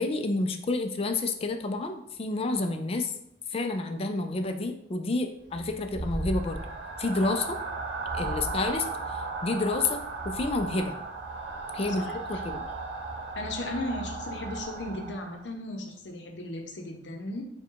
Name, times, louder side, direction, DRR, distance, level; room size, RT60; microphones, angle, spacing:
voice 1, 0.0-3.1 3.5-6.7 7.0-7.6 8.1-11.0 11.7-12.6, left 2 dB, 35° left, 7 dB, 0.4 m, -29 dB
sound 1, 5.5-15.5, right 3 dB, 90° right, 0.8 m, -35 dB
voice 2, 13.4-17.4, left 1 dB, 85° left, 3 dB, 0.7 m, -36 dB
4.6 x 2.3 x 4.6 m, 0.77 s
head